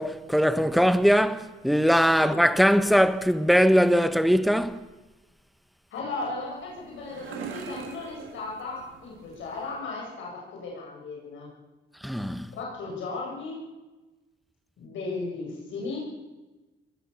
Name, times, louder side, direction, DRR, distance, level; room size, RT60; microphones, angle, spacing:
voice 1, 0.0-4.8 12.0-12.5, equal, ahead, 1.4 m, -21 dB
voice 2, 5.9-11.5 12.5-13.6 14.8-16.0, left 3 dB, 75° left, 7.9 m, -36 dB
sound 1, 6.2-9.8, right 6 dB, 80° right, 3.3 m, -43 dB
22.5 x 18.0 x 7.2 m
cardioid pair, 90°, 20 cm